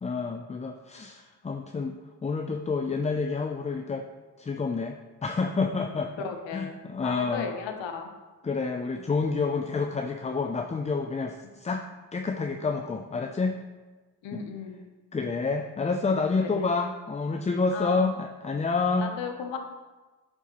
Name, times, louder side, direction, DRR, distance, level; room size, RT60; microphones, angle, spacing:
voice 1, 0.0-4.1 4.4-7.5 8.4-11.8 12.1-13.6 14.3-14.4 15.1-19.1, left 4 dB, 15° left, 5 dB, 0.4 m, -29 dB
voice 2, 6.2-8.1 14.2-14.8 16.4-16.5 17.7-18.0 19.0-19.6, left 6 dB, 80° left, 5 dB, 0.8 m, -36 dB
7.9 x 4.5 x 2.9 m, 1.3 s
supercardioid pair, 45°, 44 cm